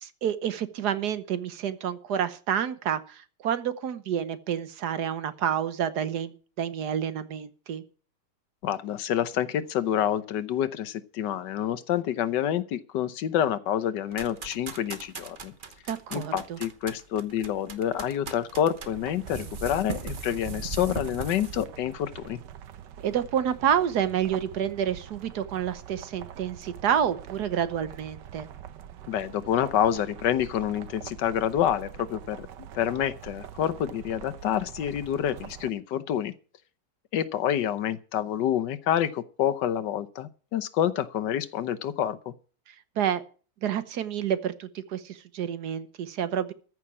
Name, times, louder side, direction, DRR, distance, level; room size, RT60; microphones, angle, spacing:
voice 1, 0.0-7.8 15.9-16.6 23.0-28.5 43.0-43.2 43.6-46.5, right 9 dB, 70° right, 1.5 m, -29 dB
voice 2, 8.6-15.5 16.1-22.4 29.1-32.5 32.7-36.3 37.1-42.3, left 10 dB, 80° left, 1.5 m, -28 dB
sound 1, 14.1-21.6, right 5 dB, 35° right, 1.0 m, -39 dB
sound 2, 18.8-35.7, right 10 dB, 85° right, 1.5 m, -45 dB
14.0 x 6.0 x 8.4 m
omnidirectional pair, 1.8 m